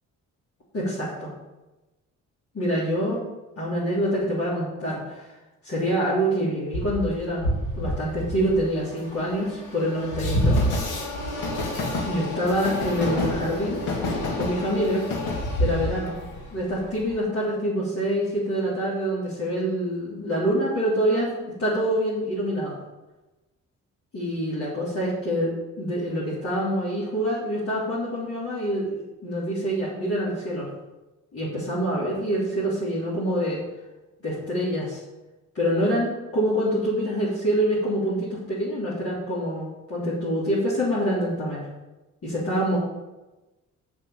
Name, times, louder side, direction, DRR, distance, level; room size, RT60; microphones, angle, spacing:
voice 1, 0.7-1.3 2.5-3.2 3.6-5.3 5.6-7.5 7.8-10.6 12.1-13.8 14.3-15.0 15.6-16.1 16.5-21.3 21.6-22.7 24.1-30.7 31.3-33.6 34.2-35.0 35.6-41.6 42.2-42.8, equal, 50° left, -8 dB, 3.4 m, -26 dB
Train, 6.7-17.1, left 1 dB, 85° left, 2.0 m, -28 dB
7.5 x 6.8 x 6.6 m, 1.1 s
cardioid pair, 90°, 30 cm